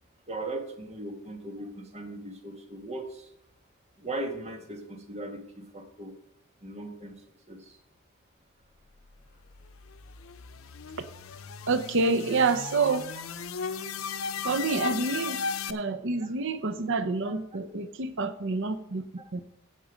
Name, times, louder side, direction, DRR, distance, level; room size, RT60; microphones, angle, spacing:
voice 1, 0.3-3.3 4.0-6.1 6.6-7.2 7.5-7.8 16.2-16.3 17.2-17.6 19.2-19.3, right 2 dB, 35° right, 5 dB, 1.6 m, -38 dB
sound 1, 9.3-15.7, left 5 dB, 90° left, 0.7 m, -36 dB
voice 2, 11.7-13.1 14.4-15.4 15.7-19.0 19.3-19.5, right 4 dB, 65° right, 10 dB, 0.7 m, -28 dB
16.0 x 5.4 x 5.1 m, 0.77 s
head